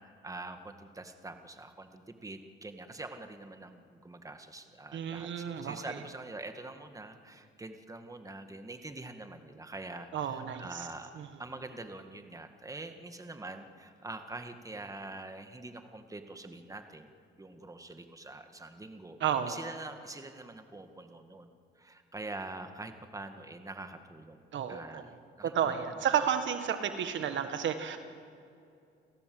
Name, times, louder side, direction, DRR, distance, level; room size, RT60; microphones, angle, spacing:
voice 1, 0.0-17.1 17.4-19.2 19.5-21.5 21.8-25.8, right 2 dB, 15° right, 7 dB, 1.9 m, -45 dB
voice 2, 4.9-6.0 10.1-10.9 11.2-11.3 19.2-19.6 24.5-25.0 25.4-28.0, right 8 dB, 70° right, 9 dB, 1.6 m, -32 dB
29.0 x 16.5 x 7.9 m, 2.5 s
cardioid pair, 90°, 20 cm